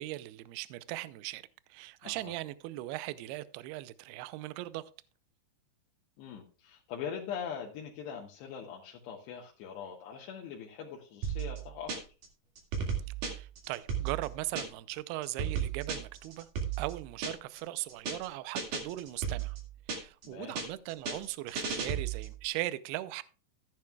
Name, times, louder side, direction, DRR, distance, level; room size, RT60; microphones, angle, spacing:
voice 1, 0.0-1.4 1.7-4.8 13.2-16.5 16.8-19.6 19.9-23.2, right 16 dB, 80° right, 2.5 m, -39 dB
voice 2, 2.0-2.3 6.2-11.9 20.2-20.7, left 7 dB, 80° left, 3.4 m, -42 dB
sound 1, 11.2-12.3 12.6-14.9 15.2-17.6 17.9-18.3 18.6-20.3 20.6-22.4, right 6 dB, 55° right, 3.3 m, -35 dB
14.0 x 10.5 x 2.3 m
omnidirectional pair, 5.0 m